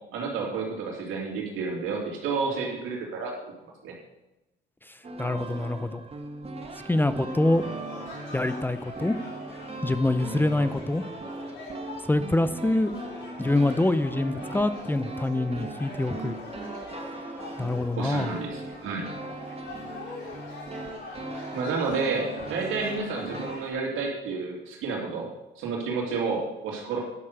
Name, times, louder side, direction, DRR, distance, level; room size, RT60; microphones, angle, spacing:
voice 1, 0.1-3.5 3.8-3.9 18.0-19.1 21.5-25.3 25.6-27.0, right 4 dB, 90° right, -1 dB, 2.8 m, -30 dB
sound 1, 5.0-23.5, right 2 dB, 30° right, 1.6 m, -39 dB
voice 2, 5.2-6.0 6.9-7.6 8.3-9.2 9.8-11.0 12.1-12.9 13.4-16.4 17.6-18.3, left 2 dB, 10° left, 12 dB, 0.6 m, -25 dB
sound 2, 7.1-23.7, left 3 dB, 65° left, 4.4 m, -43 dB
11.0 x 6.4 x 6.7 m, 0.98 s
cardioid pair, 90°, 20 cm